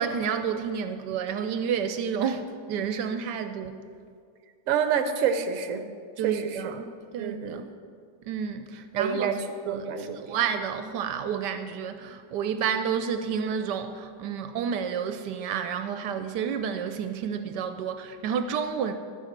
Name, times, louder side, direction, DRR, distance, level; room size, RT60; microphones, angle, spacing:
voice 1, 0.0-3.8 6.2-6.9 7.1-7.7 8.3-9.3 9.7-18.9, right 7 dB, 75° right, 1.2 m, -30 dB
voice 2, 4.7-5.8 6.2-6.7 7.2-7.6 9.0-10.4, right 7 dB, 60° right, 1.0 m, -28 dB
12.5 x 5.5 x 7.3 m
omnidirectional pair, 1.9 m